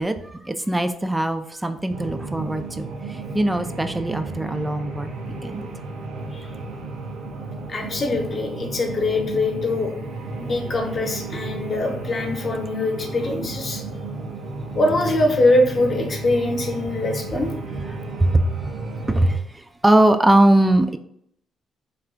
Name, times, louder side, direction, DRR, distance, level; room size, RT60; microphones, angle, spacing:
voice 1, 0.0-5.1 5.4-5.7 18.2-18.5 19.1-21.0, right 1 dB, 10° right, 9 dB, 0.4 m, -21 dB
sound 1, 1.9-19.4, right 3 dB, 80° right, 0.6 m, -33 dB
voice 2, 7.7-9.9 10.4-13.8 14.7-17.5, left 2 dB, 40° left, 2 dB, 0.9 m, -23 dB
3.3 x 2.4 x 3.7 m, 0.70 s
cardioid pair, 90°, 0 cm